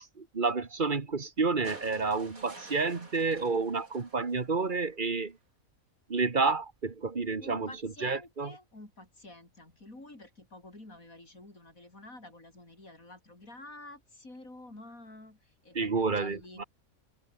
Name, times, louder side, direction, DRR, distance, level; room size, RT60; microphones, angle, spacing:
voice 1, 0.2-5.3 6.1-7.7 8.0-8.5 15.7-16.6, right 4 dB, 35° right, 1.6 m, -30 dB
sound 1, 1.6-4.9 6.3-6.4, right 2 dB, 85° right, 5.2 m, -51 dB
voice 2, 7.4-16.7, left 2 dB, 75° left, 6.9 m, -49 dB
omnidirectional pair, 1.5 m